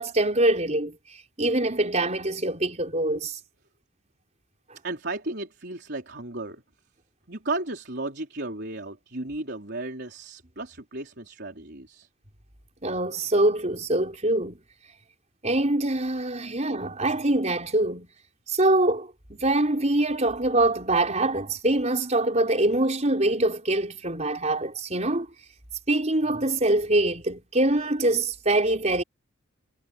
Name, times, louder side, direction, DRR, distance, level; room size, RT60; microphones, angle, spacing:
voice 1, 0.0-3.4 12.8-14.6 15.4-18.1 18.5-25.3 25.9-29.0, right 2 dB, 30° right, 5.3 m, -24 dB
voice 2, 4.8-6.6 7.3-12.1, right 2 dB, 50° right, 4.2 m, -34 dB
head